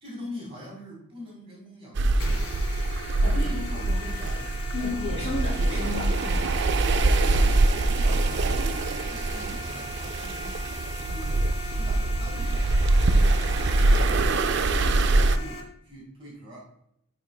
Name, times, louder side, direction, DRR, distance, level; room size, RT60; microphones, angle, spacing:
voice 1, 0.0-2.4 3.3-5.4 6.8-8.8 9.1-10.6 11.0-12.7 13.2-14.2 14.7-16.7, equal, 25° right, -2 dB, 1.9 m, -44 dB
sound 1, 1.9-15.4, right 2 dB, 55° right, 0.4 m, -24 dB
sound 2, 2.2-15.6, left 2 dB, 80° left, 1.7 m, -40 dB
voice 2, 3.2-4.1 4.7-6.5, left 3 dB, 30° left, -8 dB, 2.7 m, -33 dB
10.5 x 4.5 x 2.3 m, 0.74 s
head